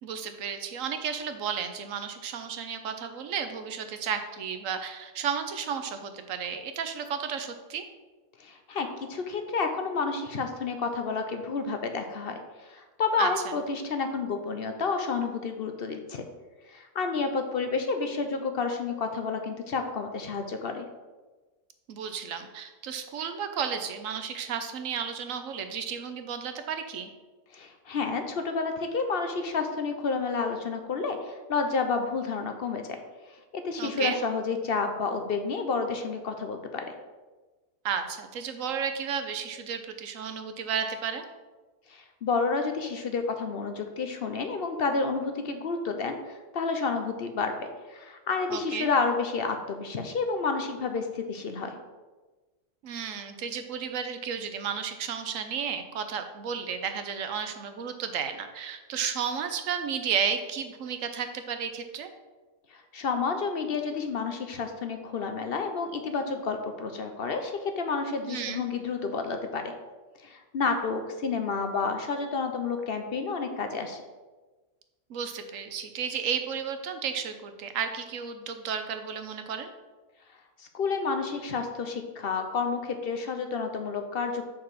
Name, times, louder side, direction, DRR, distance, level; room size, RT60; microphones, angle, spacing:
voice 1, 0.0-7.8 13.2-13.3 21.9-27.1 33.8-34.2 37.8-41.2 48.5-48.9 52.8-62.1 68.3-68.6 75.1-79.7, right 7 dB, 90° right, 8 dB, 1.2 m, -33 dB
voice 2, 8.4-16.2 16.7-20.9 27.5-32.8 33.5-36.8 41.9-51.8 62.7-69.7 70.2-74.0 80.6-84.5, left 4 dB, 55° left, 6 dB, 0.8 m, -30 dB
5.8 x 4.7 x 6.2 m, 1.2 s
omnidirectional pair, 1.3 m